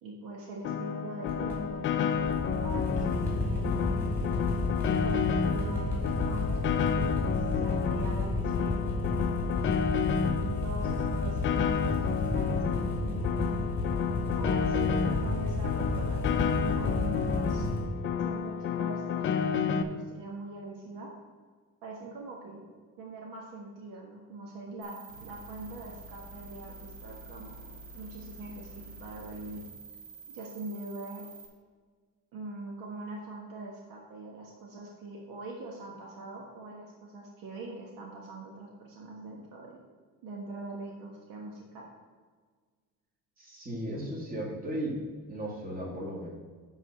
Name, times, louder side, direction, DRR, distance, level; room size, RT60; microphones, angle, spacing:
voice 1, 0.0-4.0 4.8-9.1 10.2-13.4 14.3-17.7 18.2-21.1 21.8-22.7 23.0-29.6 30.3-31.3 32.3-39.8 40.2-41.9, right 2 dB, 75° right, -1 dB, 1.5 m, -43 dB
Piano, 0.6-19.8, left 7 dB, 35° left, 0.5 m, -30 dB
sound 1, 1.3-17.8, left 2 dB, 5° left, 2.5 m, -32 dB
sound 2, 24.8-31.5, right 3 dB, 40° right, 2.0 m, -48 dB
voice 2, 43.4-45.0 45.3-46.3, right 1 dB, 25° right, -3 dB, 2.1 m, -35 dB
10.0 x 4.0 x 6.2 m, 1.5 s
cardioid pair, 170°, 33 cm